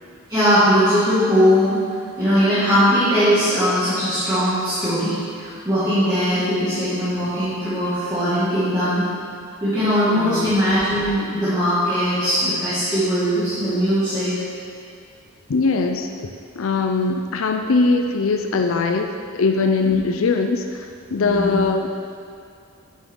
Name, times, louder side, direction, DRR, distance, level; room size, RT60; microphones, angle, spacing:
voice 1, 0.3-1.9 2.2-9.0 9.6-14.3 19.9-20.0 21.2-21.6, equal, 15° right, -16 dB, 2.1 m, -20 dB
voice 2, 10.1-10.5 15.5-16.1 16.6-21.9, left 4 dB, 75° left, 4 dB, 0.5 m, -21 dB
9.5 x 6.5 x 3.8 m, 2.3 s
head